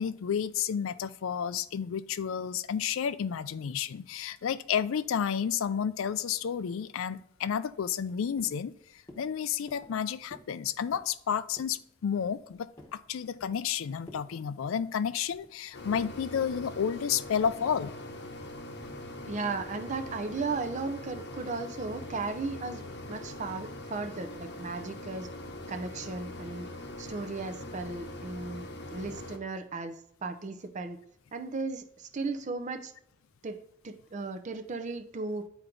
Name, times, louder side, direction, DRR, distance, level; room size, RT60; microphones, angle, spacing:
voice 1, 0.0-17.9, left 8 dB, 75° left, 15 dB, 0.4 m, -31 dB
sound 1, 7.7-8.1 8.4-8.7 9.1-9.3 9.7-10.0 10.3-10.6 10.8-11.2 11.6-11.8 12.2-13.0 13.4-13.7 14.0-14.3 14.6-15.5 15.9-16.1 16.5-16.7 17.2-17.5, left 1 dB, 15° left, 1.1 m, -52 dB
sound 2, 15.7-29.4, left 1 dB, 55° left, 0.9 m, -42 dB
voice 2, 19.3-25.3 25.7-26.7 27.0-31.0 31.3-32.9 33.4-35.5, right 3 dB, 35° right, 6 dB, 0.6 m, -36 dB
9.1 x 4.5 x 3.8 m, 0.72 s
head